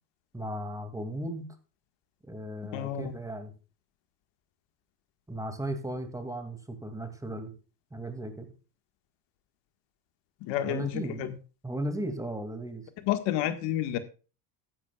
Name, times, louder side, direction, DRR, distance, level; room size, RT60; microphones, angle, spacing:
voice 1, 0.3-1.5 2.3-3.5 5.3-7.5 7.9-8.5 10.7-11.3 11.6-12.8, right 1 dB, 5° right, 8 dB, 2.4 m, -36 dB
voice 2, 2.7-3.1 10.4-11.3 13.1-14.0, left 11 dB, 70° left, 10 dB, 1.8 m, -30 dB
14.5 x 11.0 x 2.4 m, 0.33 s
cardioid pair, 120°, 44 cm